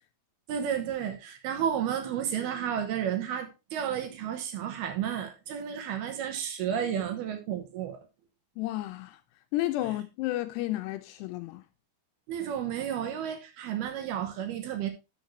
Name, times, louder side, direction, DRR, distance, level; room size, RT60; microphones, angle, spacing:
voice 1, 0.5-8.0 12.3-14.9, right 9 dB, 70° right, 2.8 m, -32 dB
voice 2, 8.6-9.2 9.5-11.6, left 16 dB, 80° left, 2.5 m, -32 dB
11.5 x 6.6 x 3.1 m
omnidirectional pair, 5.2 m